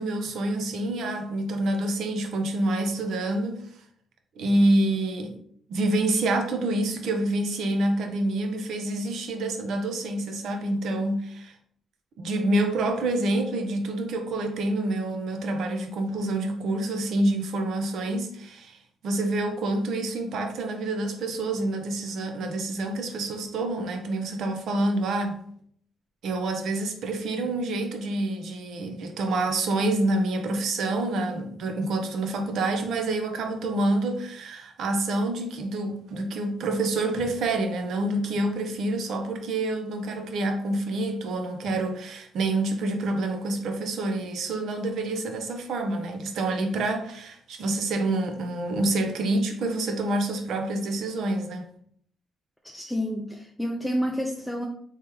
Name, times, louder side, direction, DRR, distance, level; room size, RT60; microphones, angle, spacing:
voice 1, 0.0-3.6 4.4-5.3 5.7-11.5 12.2-25.4 26.2-51.7, right 2 dB, 70° right, 0.6 m, -27 dB
voice 2, 52.6-54.7, equal, 5° left, 0.4 m, -29 dB
3.4 x 3.2 x 3.0 m
cardioid pair, 90°, 0 cm